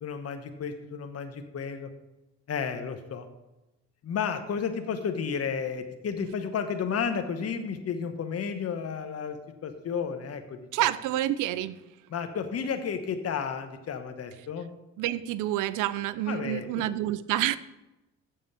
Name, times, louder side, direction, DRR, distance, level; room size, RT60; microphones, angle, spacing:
voice 1, 0.0-1.9 2.5-3.3 4.0-10.9 12.1-14.7 16.3-16.9, left 6 dB, 55° left, 7 dB, 1.1 m, -32 dB
voice 2, 10.7-11.8 15.0-17.6, right 13 dB, 85° right, 16 dB, 0.5 m, -28 dB
7.7 x 7.0 x 6.7 m, 1.0 s
cardioid pair, 90°, 30 cm